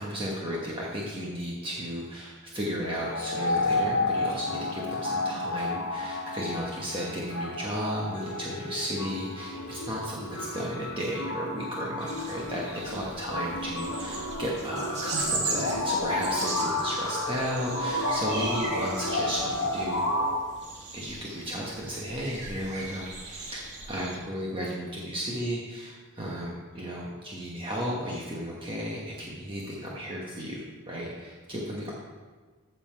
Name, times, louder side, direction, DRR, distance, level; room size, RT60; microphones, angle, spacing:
voice 1, 0.0-20.0 20.9-31.9, equal, 25° right, -4 dB, 1.2 m, -34 dB
sound 1, 2.8-20.4, left 2 dB, 75° left, 1.1 m, -31 dB
sound 2, 12.0-24.2, right 3 dB, 50° right, 2.3 m, -38 dB
15.0 x 5.6 x 4.5 m, 1.4 s
head